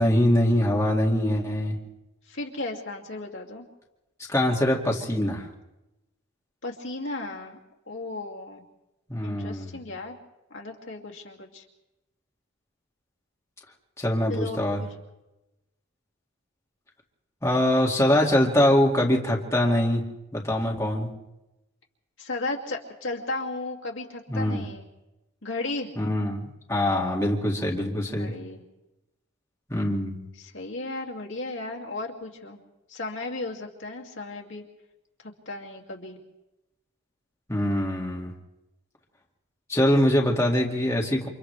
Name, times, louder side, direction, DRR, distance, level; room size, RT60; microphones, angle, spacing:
voice 1, 0.0-1.8 4.3-5.5 9.1-9.8 14.0-14.8 17.4-20.0 20.3-21.1 24.3-24.6 26.0-26.4 26.7-28.3 29.7-30.2 37.5-38.3 39.7-41.3, left 1 dB, 15° left, -2 dB, 2.1 m, -23 dB
voice 2, 2.3-3.7 6.6-7.6 7.9-8.6 9.2-10.2 10.5-11.6 14.3-14.9 22.2-24.9 25.4-25.9 28.1-28.6 30.4-32.6 32.9-34.6 35.2-36.2, left 2 dB, 60° left, 0 dB, 2.6 m, -35 dB
29.0 x 27.0 x 3.4 m, 0.97 s
head